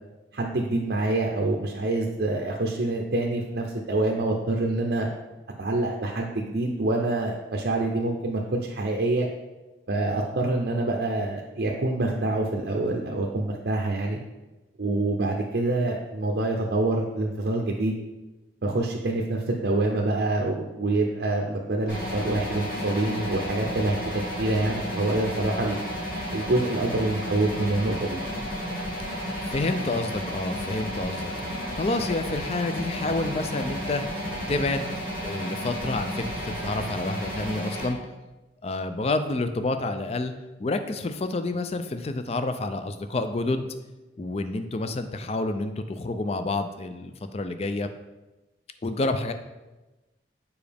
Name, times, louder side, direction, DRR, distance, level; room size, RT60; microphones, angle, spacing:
voice 1, 0.3-5.1 5.6-9.3 9.9-14.2 14.8-18.0 18.6-24.0 24.4-25.8 26.3-28.2, right 2 dB, 65° right, 0 dB, 0.6 m, -26 dB
sound 1, 21.9-37.9, equal, 50° left, 2.1 m, -32 dB
voice 2, 29.5-31.3 31.7-34.0 34.5-34.9 35.2-38.0 38.6-40.3 40.6-43.7 44.2-47.9 48.8-49.3, left 2 dB, 35° left, 9 dB, 0.4 m, -28 dB
7.0 x 5.1 x 3.4 m, 1.1 s
head